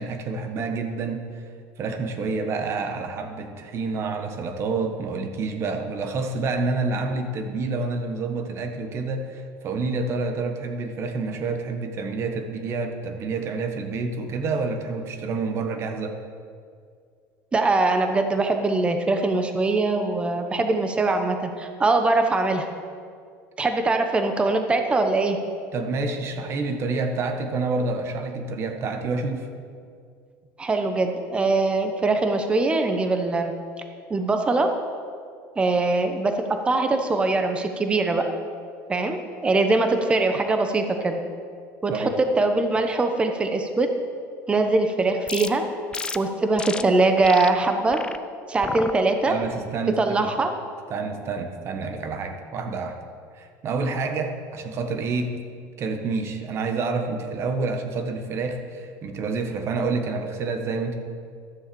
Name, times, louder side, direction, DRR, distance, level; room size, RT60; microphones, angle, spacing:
voice 1, 0.0-1.4 1.8-16.2 25.7-29.5 41.9-42.2 49.3-50.3 50.9-53.0 53.3-55.3 55.8-61.0, right 3 dB, 40° right, 6 dB, 1.4 m, -28 dB
voice 2, 17.5-22.7 23.6-25.4 30.6-33.5 34.1-34.7 35.6-38.2 38.9-41.2 41.8-43.9 44.5-45.6 46.1-48.0 48.5-49.3 50.0-50.5, right 3 dB, 15° right, 6 dB, 1.0 m, -22 dB
sound 1, 45.3-45.5 45.9-46.2 46.6-46.8 47.2-47.5 47.9-48.2 48.6-48.9 49.4-49.8, left 4 dB, 15° left, 0.4 m, -32 dB
12.5 x 7.4 x 7.0 m, 2.2 s
cardioid pair, 145°, 7 cm